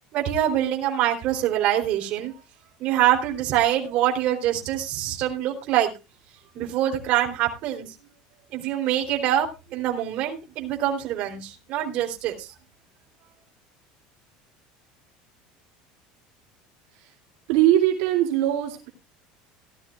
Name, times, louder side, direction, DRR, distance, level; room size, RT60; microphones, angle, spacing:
voice 1, 0.1-2.3 2.8-5.9 6.5-7.9 8.5-12.5, right 12 dB, 50° right, 2 dB, 3.3 m, -25 dB
voice 2, 17.5-18.9, right 12 dB, 75° right, 2 dB, 2.6 m, -21 dB
17.5 x 12.5 x 2.4 m, 0.28 s
cardioid pair, 155°, 3 cm